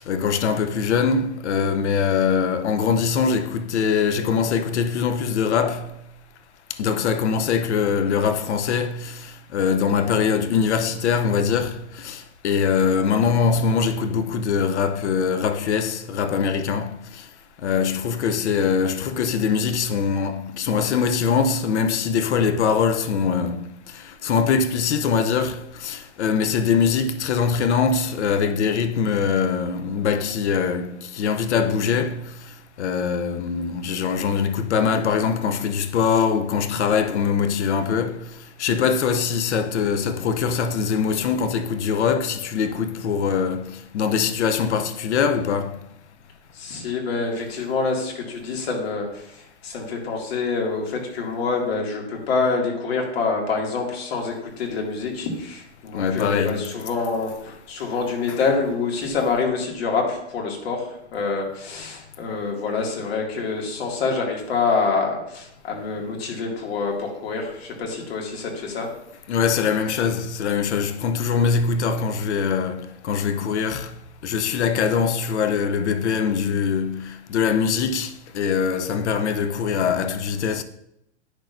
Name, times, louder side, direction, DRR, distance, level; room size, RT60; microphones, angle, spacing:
voice 1, 0.0-6.0 6.8-17.2 17.6-32.5 32.8-45.8 55.9-56.7 58.3-58.4 69.3-73.9 74.2-80.6, left 6 dB, 80° left, 0.8 m, -23 dB
voice 2, 46.5-68.9, left 4 dB, 65° left, 2.4 m, -26 dB
10.0 x 6.3 x 2.6 m
hypercardioid pair, 155°, 34 cm